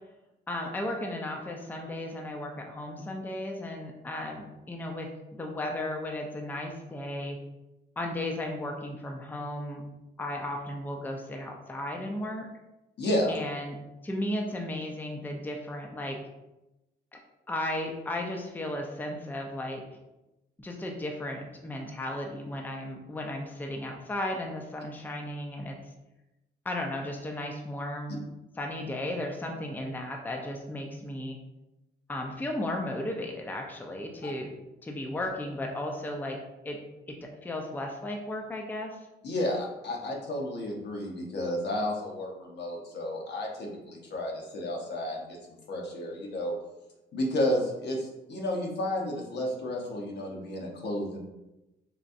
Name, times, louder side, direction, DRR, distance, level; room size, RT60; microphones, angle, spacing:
voice 1, 0.5-7.4 8.0-9.8 10.2-12.5 13.3-13.8 14.0-16.2 17.5-19.8 20.6-25.8 26.6-28.2 28.6-31.4 32.1-34.5 34.8-36.4 36.6-36.8 37.1-39.0, left 1 dB, 10° left, 1 dB, 0.5 m, -35 dB
voice 2, 13.0-13.3 34.2-34.3 39.2-45.4 45.7-46.5 47.1-51.2, left 1 dB, 65° left, -1 dB, 0.8 m, -31 dB
4.0 x 2.2 x 2.5 m, 0.96 s
cardioid pair, 80°, 19 cm